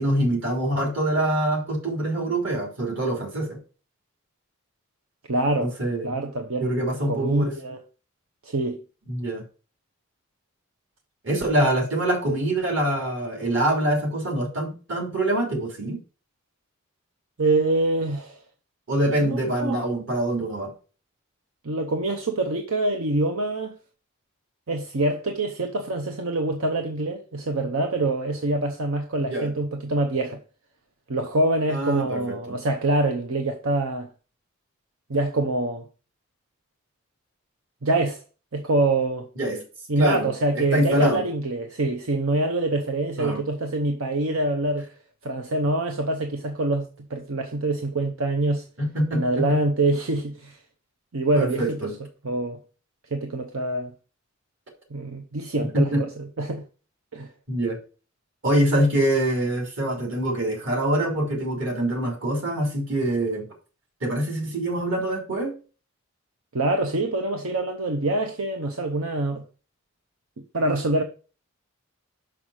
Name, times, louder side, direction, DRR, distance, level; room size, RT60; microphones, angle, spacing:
voice 1, 0.0-3.6 5.6-6.1 6.6-7.5 9.1-9.4 11.2-16.0 18.9-20.7 29.2-29.5 31.7-32.6 39.4-39.6 40.0-40.3 40.5-41.2 43.2-43.4 48.8-49.6 51.3-51.9 55.7-56.0 57.5-57.8 58.4-63.5 64.0-65.5, right 1 dB, 60° right, 3.1 m, -24 dB
voice 2, 5.3-5.7 6.0-7.8 8.4-8.8 17.4-18.4 19.2-19.8 21.6-23.8 24.7-30.4 31.1-34.1 35.1-35.8 37.8-38.2 38.5-39.3 39.9-44.9 45.2-48.7 49.1-50.6 51.1-51.9 52.2-52.6 53.1-53.9 54.9-56.6 57.1-57.3 66.5-69.4 70.5-71.0, right 2 dB, 85° right, 0.8 m, -25 dB
6.0 x 5.9 x 4.8 m
head